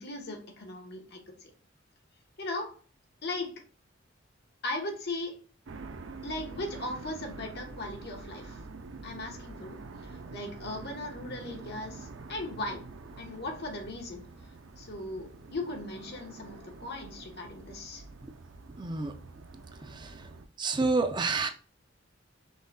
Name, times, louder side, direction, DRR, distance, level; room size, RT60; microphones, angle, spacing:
voice 1, 0.0-1.5 2.4-2.8 3.2-3.6 4.6-5.4 6.2-8.6 9.0-12.9 13.2-14.2 14.8-18.0, left 2 dB, 55° left, 1.2 m, -38 dB
sound 1, 5.7-20.5, right 3 dB, 75° right, 0.6 m, -46 dB
voice 2, 18.7-19.1 19.8-20.3 20.6-21.5, right 3 dB, 25° right, 0.4 m, -29 dB
5.4 x 3.9 x 2.3 m
head